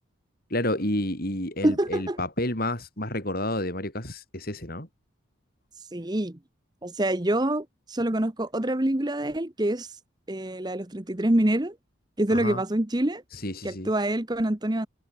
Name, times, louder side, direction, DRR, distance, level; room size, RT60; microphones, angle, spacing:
voice 1, 0.5-4.9 12.3-12.6 13.4-13.9, left 1 dB, 45° left, 7.4 m, -30 dB
voice 2, 1.6-2.2 5.9-6.4 6.8-10.0 10.3-11.8 12.2-13.2 13.6-14.9, right 1 dB, 20° right, 1.0 m, -26 dB
head